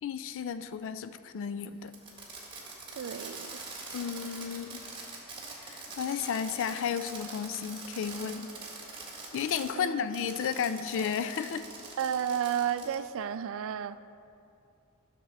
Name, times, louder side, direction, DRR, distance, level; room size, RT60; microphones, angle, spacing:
voice 1, 0.0-1.9 3.9-4.8 5.6-8.5 9.3-11.7, left 7 dB, 60° left, 11 dB, 0.3 m, -33 dB
Fireworks, 1.9-9.7 10.1-13.0, right 3 dB, 20° right, 1.5 m, -44 dB
voice 2, 3.0-3.5 9.8-10.1 12.0-14.0, right 8 dB, 60° right, 13 dB, 0.3 m, -32 dB
11.0 x 6.2 x 4.0 m, 2.6 s
head